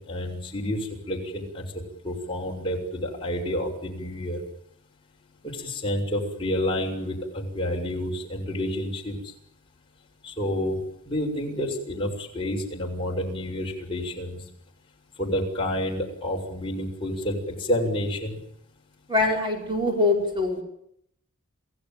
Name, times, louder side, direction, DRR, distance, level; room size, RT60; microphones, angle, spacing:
voice 1, 0.0-1.6 2.0-4.4 5.4-9.2 10.2-10.8 11.1-14.4 15.2-18.4, left 1 dB, 25° left, -1 dB, 6.1 m, -29 dB
voice 2, 19.1-20.6, left 2 dB, 20° right, 1 dB, 5.1 m, -23 dB
28.0 x 16.5 x 9.1 m, 0.73 s
head